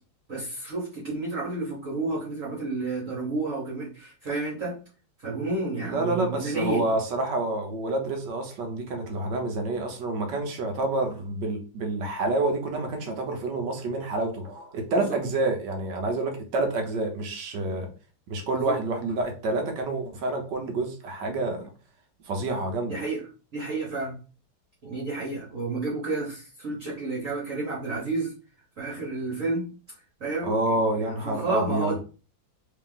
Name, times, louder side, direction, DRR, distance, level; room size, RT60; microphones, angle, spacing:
voice 1, 0.3-4.8 5.2-7.0 14.9-15.2 18.5-18.8 22.9-23.2 23.5-24.1 24.8-28.3 28.8-29.7 30.2-32.0, right 3 dB, 45° right, -5 dB, 1.4 m, -31 dB
voice 2, 5.8-17.9 18.3-21.6 22.3-23.0 30.4-31.9, right 2 dB, 65° right, 4 dB, 1.2 m, -28 dB
3.3 x 2.8 x 3.8 m, 0.35 s
omnidirectional pair, 2.3 m